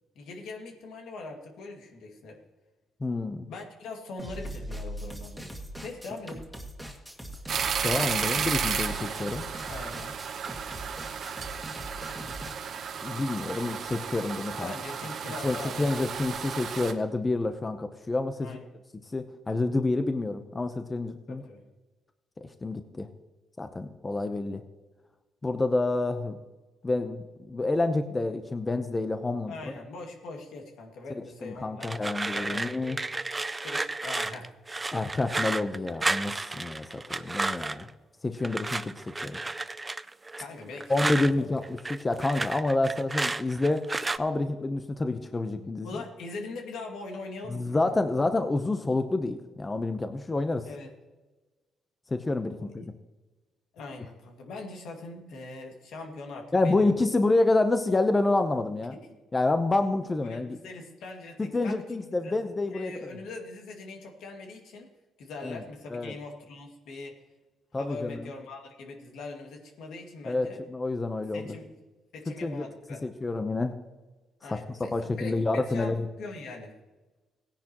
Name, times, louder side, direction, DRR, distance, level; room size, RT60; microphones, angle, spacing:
voice 1, 0.2-2.4 3.5-6.5 9.7-10.2 14.6-16.0 18.4-18.7 21.3-21.6 29.5-32.0 32.3-33.0 33.6-34.5 40.4-40.9 41.2-41.5 45.8-47.8 50.6-50.9 52.6-52.8 53.7-56.9 60.2-64.9 65.2-67.2 67.7-70.6 71.3-71.7 72.1-73.1 74.4-76.8, left 3 dB, 80° left, 2 dB, 2.1 m, -42 dB
voice 2, 3.0-3.5 7.8-9.4 13.0-14.7 15.4-18.6 19.1-21.4 22.6-23.1 23.6-24.6 25.4-26.4 26.8-29.5 31.4-33.0 34.9-37.9 38.2-38.9 39.2-39.4 40.9-43.8 44.2-45.9 47.5-50.7 52.1-52.9 56.5-59.0 59.3-60.6 61.5-62.9 65.4-65.6 65.9-66.1 67.7-68.3 70.3-71.5 72.4-72.6 73.0-73.8 74.5-74.6 74.9-76.1, left 2 dB, 25° left, 8 dB, 0.8 m, -28 dB
sound 1, 4.2-12.5, equal, ahead, 2.0 m, -40 dB
sound 2, 7.5-16.9, right 7 dB, 60° right, 0.9 m, -33 dB
sound 3, 31.8-37.9 38.4-41.3 41.6-44.2, right 2 dB, 20° right, 0.4 m, -32 dB
17.0 x 10.0 x 3.0 m, 1.2 s
cardioid pair, 90°, 0 cm